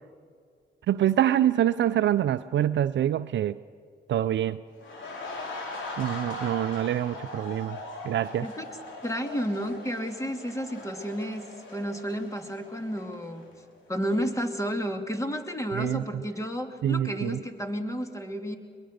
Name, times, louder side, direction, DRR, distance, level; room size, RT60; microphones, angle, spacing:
voice 1, 0.9-3.6 4.1-4.6 6.0-7.8 8.0-8.5 15.7-16.0 16.8-17.4, right 11 dB, 75° right, 12 dB, 0.5 m, -25 dB
sound 1, 4.8-13.6 13.9-14.1, left 2 dB, 85° left, 4.0 m, -40 dB
voice 2, 9.0-13.4 13.9-18.6, equal, 15° left, 5 dB, 2.6 m, -31 dB
23.0 x 21.5 x 6.5 m, 2.2 s
cardioid pair, 60°, 19 cm